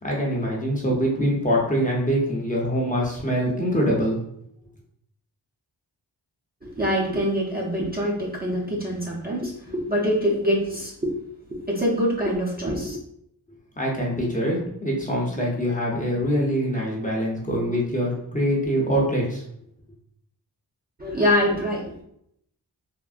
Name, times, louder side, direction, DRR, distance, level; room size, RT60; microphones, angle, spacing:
voice 1, 0.0-4.2 13.8-19.4, equal, 20° left, -3 dB, 0.6 m, -24 dB
voice 2, 6.6-11.1 11.5-13.0 21.0-22.0, equal, 25° right, -5 dB, 0.5 m, -25 dB
3.5 x 2.0 x 2.4 m, 0.73 s
wide cardioid pair, 100°, 42 cm